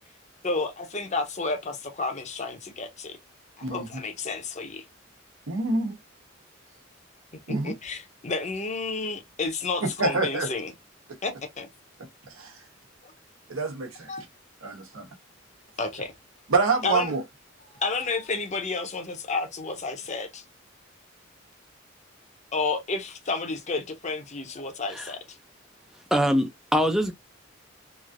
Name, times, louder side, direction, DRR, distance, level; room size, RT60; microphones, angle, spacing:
voice 1, 0.4-3.2 3.7-4.8 7.6-10.7 11.2-11.7 14.1-14.2 15.8-16.1 16.8-17.1 17.7-20.4 22.5-25.4, left 3 dB, 35° left, 0.7 m, -31 dB
voice 2, 5.5-6.0 7.5-7.7 9.8-10.5 12.3-12.6 13.5-14.1 14.6-15.1 16.5-17.2, right 3 dB, 85° right, 1.0 m, -26 dB
voice 3, 26.1-27.1, equal, ahead, 0.3 m, -23 dB
3.1 x 2.6 x 2.4 m
head